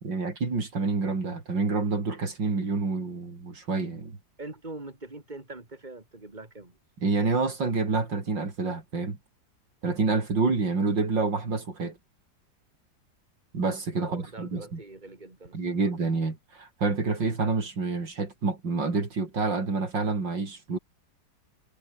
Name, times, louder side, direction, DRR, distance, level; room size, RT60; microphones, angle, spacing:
voice 1, 0.0-4.2 7.0-9.2 9.8-12.0 13.5-14.8 15.5-20.8, right 4 dB, 80° right, 4.7 m, -28 dB
voice 2, 4.4-6.8 14.0-15.6, right 2 dB, 25° right, 4.2 m, -43 dB
omnidirectional pair, 2.0 m